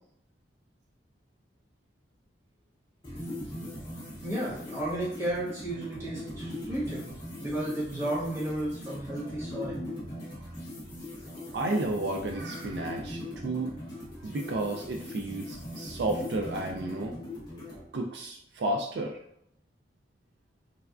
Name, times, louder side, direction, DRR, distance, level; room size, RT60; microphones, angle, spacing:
sound 1, 3.0-17.8, left 1 dB, 25° left, 0.8 m, -40 dB
voice 1, 4.2-7.0 7.4-9.8, right 1 dB, 15° right, -9 dB, 1.2 m, -33 dB
voice 2, 11.5-13.7 14.2-17.2 17.9-19.2, right 2 dB, 70° right, 2 dB, 0.3 m, -32 dB
3.3 x 2.3 x 2.3 m, 0.71 s
head